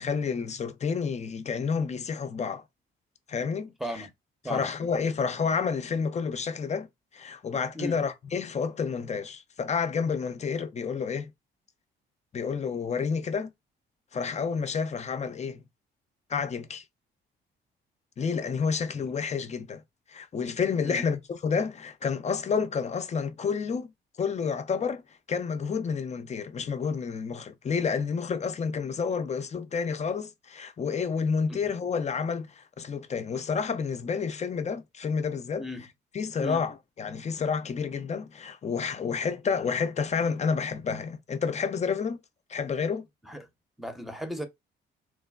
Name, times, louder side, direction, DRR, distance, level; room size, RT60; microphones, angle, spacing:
voice 1, 0.0-2.6 3.3-4.0 4.4-6.9 7.1-11.3 12.3-13.5 14.1-15.6 16.3-16.8 18.2-19.8 20.1-23.9 24.2-25.0 25.3-35.7 36.1-42.2 42.5-43.1, left 5 dB, 35° left, 0.5 m, -30 dB
voice 2, 43.8-44.4, equal, ahead, 0.7 m, -35 dB
3.1 x 2.1 x 2.2 m
cardioid pair, 90°, 20 cm